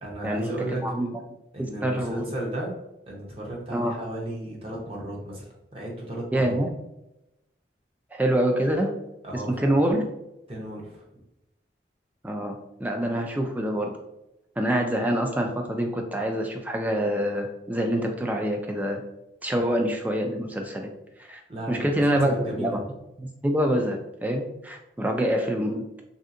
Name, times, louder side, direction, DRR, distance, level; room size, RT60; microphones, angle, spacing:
voice 1, 0.0-0.8 1.5-2.8 3.1-5.4 5.7-6.6 9.2-9.8 10.5-11.0 21.5-22.9, right 1 dB, 30° right, -3 dB, 0.8 m, -34 dB
voice 2, 1.6-2.3 3.7-3.9 6.3-6.7 8.1-8.9 9.3-10.0 12.2-13.9 14.6-19.0 19.4-20.9 21.2-21.4 21.7-22.8 23.2-26.0, right 1 dB, 10° right, 3 dB, 0.3 m, -26 dB
3.2 x 2.7 x 2.5 m, 0.90 s
head